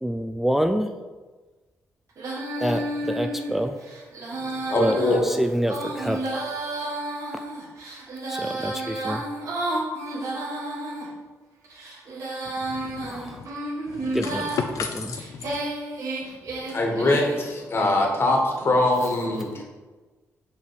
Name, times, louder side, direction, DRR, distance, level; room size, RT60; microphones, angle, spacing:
voice 1, 0.0-0.9 2.6-3.8 4.8-6.4 8.3-9.2 13.1-13.4 14.1-14.5, equal, 5° right, 6 dB, 0.3 m, -26 dB
Female singing, 2.2-11.1 11.6-14.6 15.1-17.4, right 1 dB, 70° right, 1.7 m, -31 dB
voice 2, 4.4-5.2 16.2-16.3 16.7-19.6, left 2 dB, 45° left, 1 dB, 1.5 m, -23 dB
voice 3, 12.7-13.5 13.9-15.6, left 6 dB, 70° left, 5 dB, 0.4 m, -34 dB
5.7 x 4.9 x 4.6 m, 1.3 s
cardioid pair, 100°, 6 cm